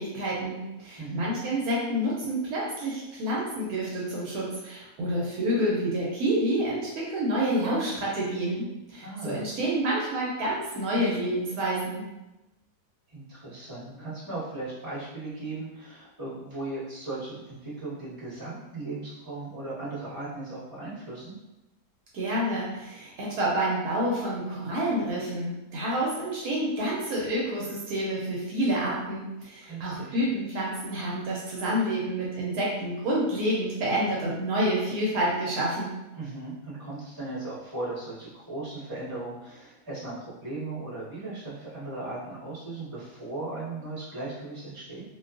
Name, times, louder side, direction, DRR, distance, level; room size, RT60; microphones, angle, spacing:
voice 1, 0.0-12.0 22.1-35.9, right 1 dB, 75° right, -5 dB, 1.0 m, -28 dB
voice 2, 1.0-1.3 8.9-9.5 13.1-21.3 29.6-30.1 36.1-45.0, right 2 dB, 15° right, -11 dB, 1.0 m, -37 dB
2.7 x 2.2 x 2.4 m, 0.99 s
omnidirectional pair, 1.7 m